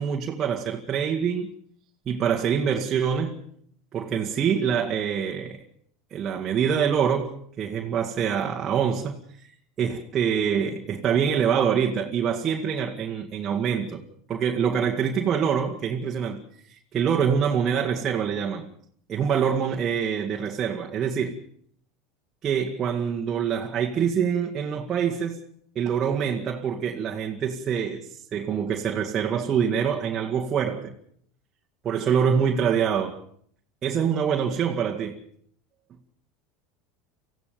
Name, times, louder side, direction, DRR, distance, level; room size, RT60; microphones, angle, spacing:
voice 1, 0.0-1.5 2.1-3.4 3.9-5.6 6.1-9.5 9.8-14.0 14.3-16.4 16.7-18.7 19.1-21.4 22.4-25.4 25.8-30.9 31.8-33.2 33.8-35.2, right 7 dB, 35° right, 2.2 m, -25 dB
25.5 x 16.0 x 7.0 m
hypercardioid pair, 85°, 0 cm